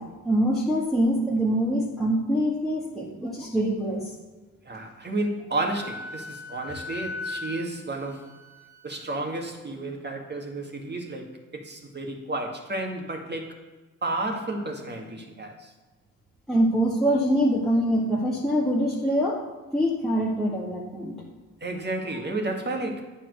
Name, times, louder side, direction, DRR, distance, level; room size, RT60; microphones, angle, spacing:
voice 1, 0.0-4.1 16.5-19.4 19.7-21.2, equal, ahead, -7 dB, 1.9 m, -24 dB
voice 2, 4.6-8.3 8.8-13.6 14.0-15.7 21.6-23.0, right 2 dB, 25° right, 2 dB, 2.0 m, -32 dB
Wind instrument woodwind instrument, 5.7-9.2, left 3 dB, 75° left, 1.4 m, -38 dB
9.2 x 4.3 x 6.6 m, 1.3 s
hypercardioid pair, 55°, 41 cm